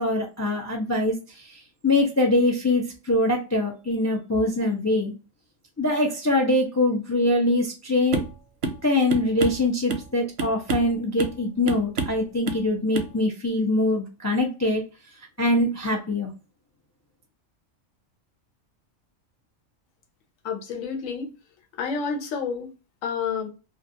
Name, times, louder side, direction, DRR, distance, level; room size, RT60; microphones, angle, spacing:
voice 1, 0.0-5.1 5.8-8.2 8.8-14.8 15.4-16.3, left 1 dB, 30° left, 0.3 m, -23 dB
sound 1, 8.1-8.4 8.6-8.8 9.1-10.1 10.4-10.9 11.2-11.4 11.7-12.2 12.5-12.7 12.9-13.1, right 4 dB, 55° right, 0.6 m, -28 dB
voice 2, 20.4-21.3 21.8-22.7 23.0-23.5, left 5 dB, 80° left, 1.1 m, -29 dB
2.4 x 2.4 x 2.6 m
omnidirectional pair, 1.3 m